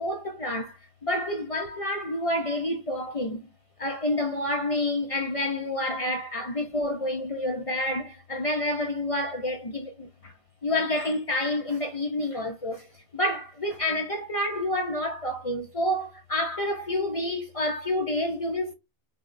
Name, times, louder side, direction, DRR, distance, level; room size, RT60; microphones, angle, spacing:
voice 1, 0.0-3.5 3.8-10.3 10.6-12.9 13.1-18.7, left 1 dB, 45° left, 0.4 m, -29 dB
5.6 x 2.1 x 2.5 m
omnidirectional pair, 1.3 m